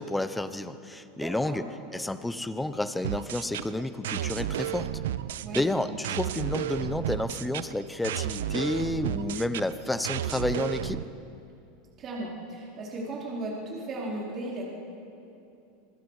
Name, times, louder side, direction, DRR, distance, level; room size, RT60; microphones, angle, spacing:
voice 1, 0.0-1.6 1.9-4.9 5.5-11.0, left 1 dB, 5° left, 12 dB, 0.8 m, -30 dB
voice 2, 1.2-1.7 5.4-6.0 12.0-14.7, right 2 dB, 35° right, -4 dB, 4.1 m, -36 dB
sound 1, 3.0-11.0, right 11 dB, 85° right, 0.6 m, -33 dB
26.5 x 20.0 x 4.9 m, 2.7 s
supercardioid pair, 130°, 0 cm